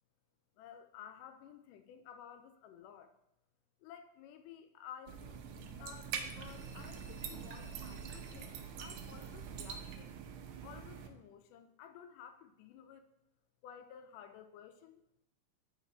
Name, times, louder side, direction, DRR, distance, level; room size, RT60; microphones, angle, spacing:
voice 1, 0.6-3.1 3.8-10.2 10.6-13.1 13.6-15.0, left 9 dB, 80° left, 8 dB, 2.0 m, -54 dB
sound 1, 5.1-11.1, right 7 dB, 85° right, 2.2 m, -44 dB
7.2 x 5.3 x 3.9 m, 0.84 s
omnidirectional pair, 3.9 m